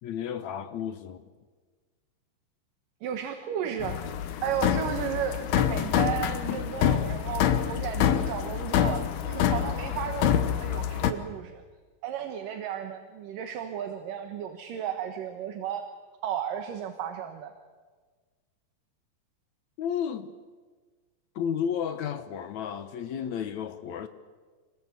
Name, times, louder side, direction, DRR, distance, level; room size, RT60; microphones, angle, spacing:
voice 1, 0.0-1.3 19.8-20.4 21.4-24.1, left 8 dB, 65° left, 2.0 m, -32 dB
voice 2, 3.0-4.0 4.4-11.6 12.0-15.8 16.2-17.5, right 9 dB, 70° right, 2.8 m, -34 dB
sound 1, 3.8-11.1, left 10 dB, 85° left, 3.1 m, -26 dB
26.5 x 21.0 x 8.3 m
omnidirectional pair, 4.3 m